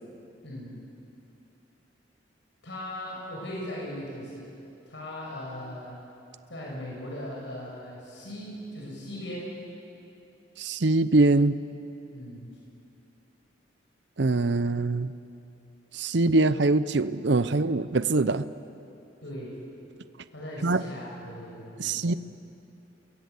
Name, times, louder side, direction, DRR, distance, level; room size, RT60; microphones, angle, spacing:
voice 1, 0.4-0.8 2.6-4.5 4.9-6.0 6.5-9.5 12.1-12.5 19.2-19.6 20.3-22.1, left 1 dB, 75° left, -3 dB, 6.5 m, -38 dB
voice 2, 10.6-11.6 14.2-15.1 15.9-18.5 20.6-20.8 21.8-22.1, right 2 dB, 70° right, 13 dB, 0.7 m, -23 dB
29.5 x 21.5 x 8.2 m, 2.7 s
head